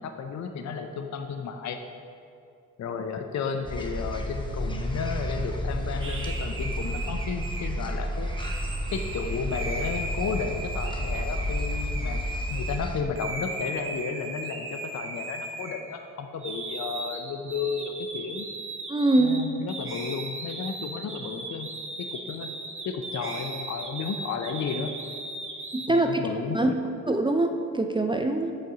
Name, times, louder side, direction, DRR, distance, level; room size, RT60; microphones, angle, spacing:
voice 1, 0.0-1.8 2.8-8.3 8.9-12.2 12.5-18.5 19.2-21.7 22.0-22.5 22.8-24.9 25.9-26.8, left 5 dB, 55° left, 6 dB, 0.5 m, -33 dB
sound 1, 3.6-13.0, equal, 15° left, 0.8 m, -31 dB
sound 2, 6.0-12.8 13.2-16.1 16.4-25.9, right 3 dB, 40° right, 0.9 m, -37 dB
voice 2, 18.9-19.4 25.7-26.2 26.5-26.7 27.1-28.5, right 2 dB, 15° right, 4 dB, 0.4 m, -23 dB
6.5 x 4.1 x 4.9 m, 2.5 s
cardioid pair, 55°, 33 cm